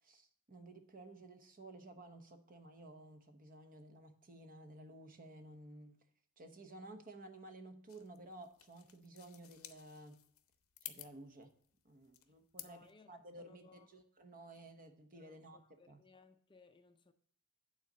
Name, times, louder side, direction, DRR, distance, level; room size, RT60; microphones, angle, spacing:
voice 1, 0.0-6.0 6.4-10.2 10.8-11.5 11.8-15.6 15.9-16.0, right 2 dB, 40° right, 1.0 m, -54 dB
sound 1, 7.9-12.9, left 13 dB, 70° left, 0.7 m, -54 dB
voice 2, 12.6-13.9 15.1-17.1, left 4 dB, 25° left, 0.5 m, -64 dB
9.0 x 4.0 x 6.5 m
head